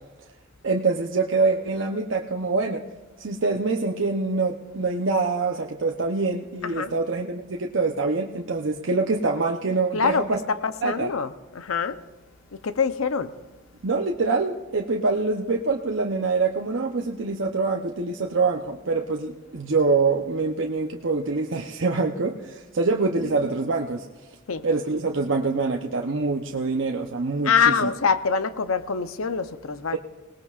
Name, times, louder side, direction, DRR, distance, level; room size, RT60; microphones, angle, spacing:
voice 1, 0.6-2.8 3.2-10.4 10.8-11.1 13.8-24.1 24.6-27.9, right 3 dB, 70° right, 0.8 m, -25 dB
voice 2, 6.6-6.9 9.9-12.0 12.5-13.3 23.2-23.5 24.5-24.6 27.4-30.0, left 6 dB, 90° left, 0.7 m, -25 dB
29.0 x 18.5 x 2.5 m
head